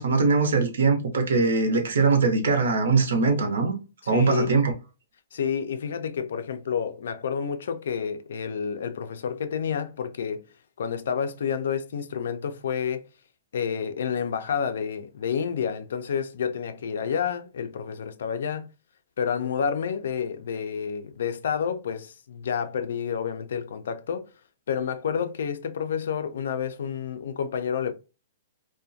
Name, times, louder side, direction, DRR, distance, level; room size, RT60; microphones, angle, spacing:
voice 1, 0.0-3.7 4.1-4.7, right 4 dB, 80° right, 0.7 m, -22 dB
voice 2, 4.0-4.5 5.3-13.1 13.5-18.7 19.2-24.3 24.7-27.9, left 7 dB, 70° left, 0.3 m, -29 dB
2.3 x 2.1 x 2.5 m
hypercardioid pair, 180°, 0 cm